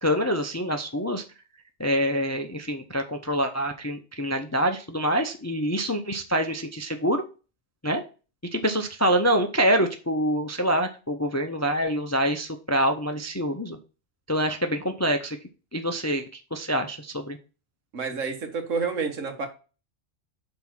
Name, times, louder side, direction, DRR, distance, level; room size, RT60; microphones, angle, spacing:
voice 1, 0.0-1.2 1.8-7.2 7.8-8.0 8.5-13.8 14.3-15.4 15.7-17.4, equal, 25° left, 6 dB, 0.4 m, -26 dB
voice 2, 17.9-19.5, right 4 dB, 80° right, 5 dB, 1.7 m, -29 dB
5.8 x 4.3 x 6.0 m, 0.34 s
omnidirectional pair, 1.3 m